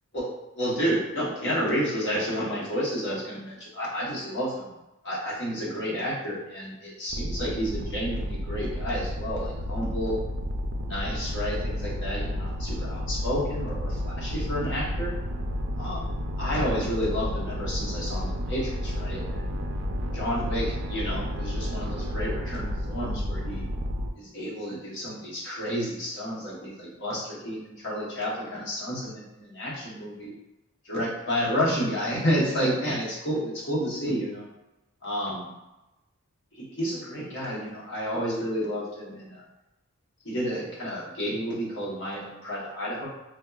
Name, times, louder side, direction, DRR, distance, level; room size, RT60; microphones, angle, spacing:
voice 1, 0.5-4.7 5.0-10.2 10.8-15.1 15.8-16.1 16.4-19.5 20.1-23.7 24.2-30.3 30.8-34.5 35.0-35.5 36.5-39.4 40.2-43.1, equal, 55° left, -6 dB, 1.0 m, -30 dB
sound 1, 7.1-24.1, equal, 55° right, 0.4 m, -31 dB
4.2 x 2.2 x 2.3 m, 0.98 s
head